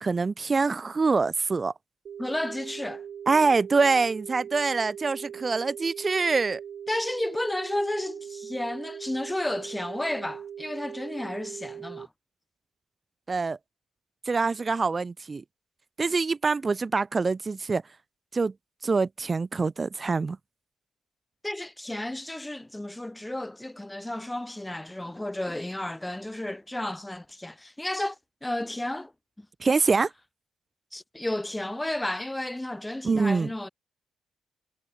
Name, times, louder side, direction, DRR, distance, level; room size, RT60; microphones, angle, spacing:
voice 1, 0.0-1.7 3.3-6.6 13.3-13.6 14.3-15.4 16.0-17.8 18.3-18.5 18.8-20.4 29.6-30.1 33.0-33.5, right 4 dB, 25° right, 0.3 m, -25 dB
sound 1, 2.1-12.1, right 8 dB, 55° right, 0.8 m, -40 dB
voice 2, 2.2-3.0 6.9-12.1 21.4-28.2 28.4-29.1 29.4-29.5 30.9-33.7, left 1 dB, 5° left, 0.7 m, -32 dB
cardioid pair, 145°, 0 cm